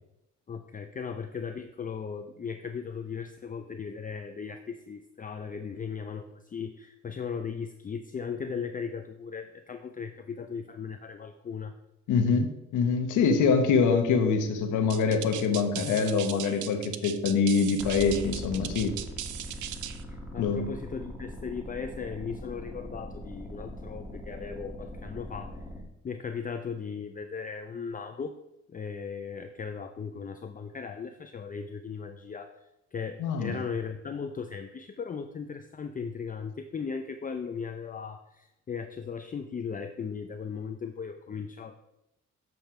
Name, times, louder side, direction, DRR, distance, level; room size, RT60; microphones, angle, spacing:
voice 1, 0.5-11.7 20.1-25.6 26.0-28.4 28.7-32.6 32.9-41.7, left 6 dB, 30° left, 7 dB, 0.5 m, -37 dB
voice 2, 12.1-19.0 20.4-20.7 33.2-33.5, left 5 dB, 80° left, 6 dB, 1.1 m, -25 dB
sound 1, 14.9-20.0, right 12 dB, 85° right, 0.6 m, -38 dB
sound 2, 17.8-25.8, equal, ahead, 1.8 m, -41 dB
7.9 x 5.4 x 4.4 m, 0.88 s
cardioid pair, 90°, 30 cm